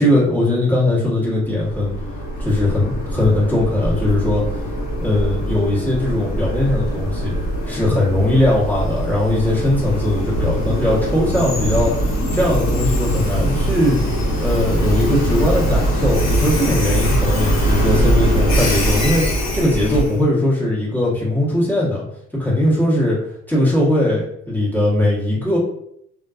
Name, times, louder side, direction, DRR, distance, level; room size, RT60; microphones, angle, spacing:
voice 1, 0.0-1.9 2.4-4.4 5.0-7.3 7.7-11.9 12.3-14.1 14.4-22.0 22.3-23.2 23.5-25.6, left 1 dB, 5° left, -8 dB, 1.0 m, -19 dB
Train, 1.5-20.2, equal, 55° left, 1.0 m, -21 dB
2.4 x 2.2 x 2.3 m, 0.74 s
supercardioid pair, 85°, 32 cm